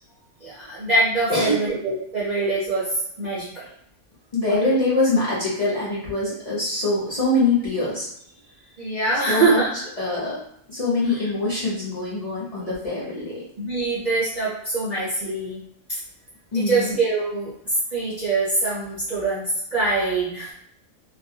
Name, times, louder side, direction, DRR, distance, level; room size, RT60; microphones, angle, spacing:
voice 1, 0.4-3.7 4.5-4.7 8.8-9.8 13.6-15.6 15.9-16.0 16.5-20.5, right 3 dB, 50° right, -8 dB, 0.5 m, -24 dB
voice 2, 1.3-1.7 4.3-8.1 9.3-9.6 10.0-13.4 16.5-16.9, left 2 dB, 40° left, -8 dB, 0.6 m, -24 dB
2.4 x 2.1 x 2.7 m, 0.72 s
omnidirectional pair, 1.3 m